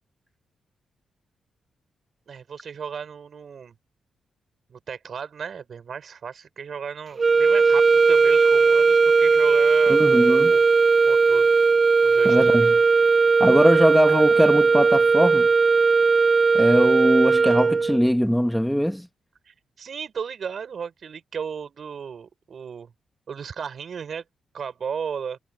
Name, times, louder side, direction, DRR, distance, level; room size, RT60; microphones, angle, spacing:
voice 1, 2.3-3.8 4.7-10.7 11.0-11.5 12.0-12.4 14.1-14.2 19.5-22.9 23.3-24.2 24.5-25.4, right 6 dB, 60° right, 7.3 m, -35 dB
sound 1, 7.2-18.1, right 4 dB, 40° right, 0.8 m, -18 dB
voice 2, 9.9-10.5 12.2-12.8 13.4-15.5 16.5-19.1, equal, ahead, 1.5 m, -21 dB
cardioid pair, 85°, 0 cm